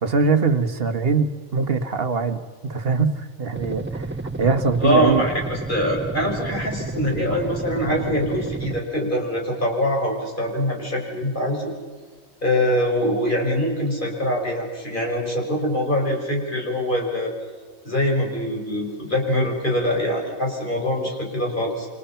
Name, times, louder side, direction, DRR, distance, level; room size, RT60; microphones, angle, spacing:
voice 1, 0.0-5.3, right 4 dB, 45° right, 9 dB, 1.6 m, -22 dB
sound 1, 3.6-8.8, right 3 dB, 20° right, 0.3 m, -31 dB
voice 2, 4.8-11.7 12.4-17.3 17.8-21.9, equal, 40° left, -1 dB, 5.6 m, -23 dB
29.0 x 26.0 x 5.8 m, 1.5 s
omnidirectional pair, 1.4 m